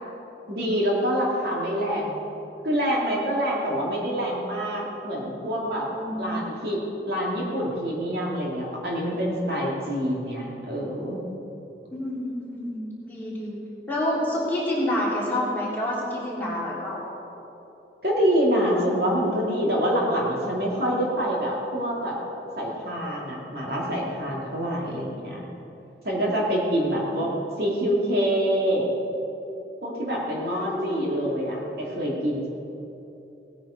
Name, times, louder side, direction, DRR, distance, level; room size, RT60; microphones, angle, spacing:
voice 1, 0.5-2.2 2.6-5.9 6.2-6.8 7.1-11.2 18.0-22.2 22.6-25.4 26.0-27.3 27.6-28.9 29.8-32.5, equal, 60° right, -3 dB, 2.6 m, -26 dB
voice 2, 5.9-6.5 11.9-13.6 13.9-17.0 27.1-27.2 30.4-31.1, left 1 dB, 10° left, -7 dB, 3.5 m, -28 dB
18.5 x 9.5 x 5.2 m, 3.0 s
head